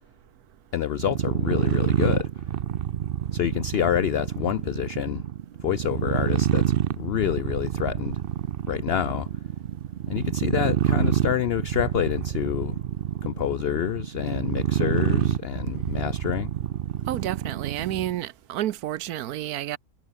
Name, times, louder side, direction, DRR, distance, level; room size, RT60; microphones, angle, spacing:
voice 1, 0.7-2.3 3.3-5.2 5.6-8.2 8.7-9.3 10.1-12.8 13.2-16.5, left 10 dB, 75° left, 0.5 m, -27 dB
sound 1, 0.9-18.2, right 10 dB, 55° right, 0.6 m, -27 dB
voice 2, 17.1-19.8, right 13 dB, 85° right, 1.2 m, -30 dB
omnidirectional pair, 1.6 m